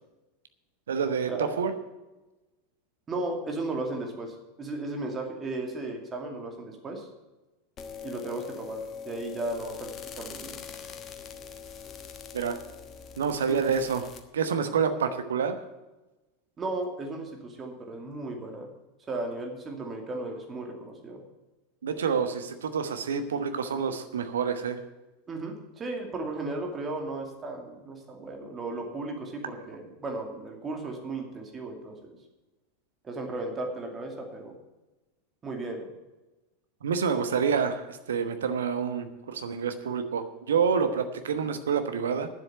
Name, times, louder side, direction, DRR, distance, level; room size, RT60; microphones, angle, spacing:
voice 1, 0.9-1.7 12.3-12.6 13.2-15.6 21.8-24.8 36.8-42.3, right 6 dB, 70° right, 9 dB, 1.1 m, -28 dB
voice 2, 3.1-7.1 8.0-9.9 10.1-10.6 13.5-13.6 16.6-18.7 19.1-21.2 25.3-32.2 33.0-34.5 35.4-35.9, right 2 dB, 25° right, 2 dB, 2.5 m, -35 dB
sound 1, 7.8-14.2, left 7 dB, 30° left, 1.3 m, -43 dB
9.7 x 7.9 x 9.2 m, 1.1 s
figure-of-eight pair, 85°, 0 cm